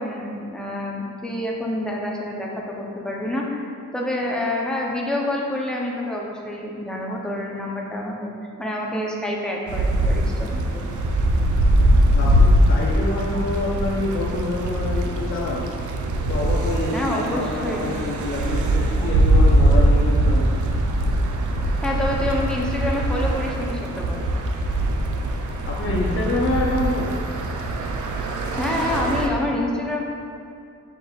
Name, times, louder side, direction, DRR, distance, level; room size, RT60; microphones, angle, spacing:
voice 1, 0.0-8.3 8.6-10.9 16.9-17.9 21.8-24.3 28.6-30.0, left 1 dB, 5° left, -3 dB, 0.5 m, -27 dB
sound 1, 9.7-29.3, right 1 dB, 85° right, 0.5 m, -21 dB
voice 2, 12.1-15.6 16.2-20.6 25.7-27.3, left 2 dB, 45° left, -4 dB, 0.6 m, -27 dB
5.0 x 4.5 x 2.3 m, 2.5 s
wide cardioid pair, 135°, 29 cm